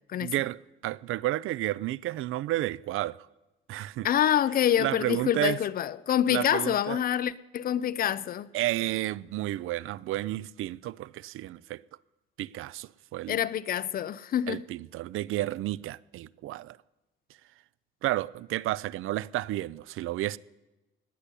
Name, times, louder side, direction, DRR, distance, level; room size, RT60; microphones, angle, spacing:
voice 1, 0.2-3.3 3.7-4.1 4.8-5.6 6.3-7.0 8.5-11.8 12.4-13.4 14.5-16.8 18.0-20.4, right 15 dB, 75° right, 0.4 m, -31 dB
voice 2, 4.0-8.5 13.3-14.6, left 10 dB, 45° left, 0.5 m, -26 dB
19.0 x 6.9 x 9.8 m
cardioid pair, 160°, 21 cm